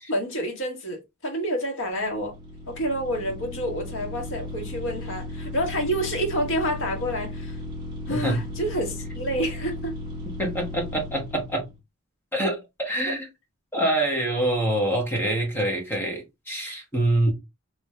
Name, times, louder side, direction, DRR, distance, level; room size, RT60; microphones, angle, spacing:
voice 1, 0.1-2.3 2.7-7.6 8.1-10.0, equal, 60° left, 1.2 m, -28 dB
sound 1, 1.9-11.8, left 1 dB, 20° right, 1.5 m, -36 dB
voice 2, 10.3-11.7 12.3-13.3 13.7-17.3, right 1 dB, 10° left, 1.2 m, -25 dB
3.2 x 3.1 x 3.2 m
head